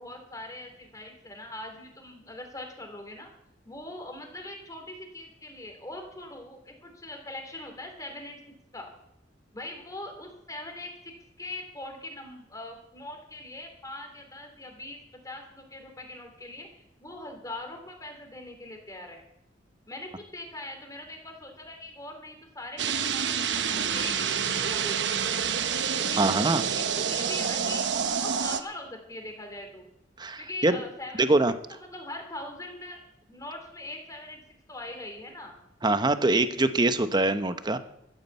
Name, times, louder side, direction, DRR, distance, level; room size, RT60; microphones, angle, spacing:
voice 1, 0.0-3.3 3.6-8.9 9.5-16.7 17.0-19.2 19.9-25.4 26.0-27.9 28.2-29.8 30.4-31.3 31.7-34.4 34.7-35.6, left 1 dB, 20° left, 4 dB, 3.2 m, -42 dB
sound 1, 22.8-28.6, right 7 dB, 75° right, 1.0 m, -28 dB
voice 2, 26.2-26.6 30.2-30.7 31.2-31.5 35.8-37.8, right 2 dB, 25° right, 10 dB, 0.9 m, -23 dB
13.5 x 8.8 x 8.2 m, 0.82 s
head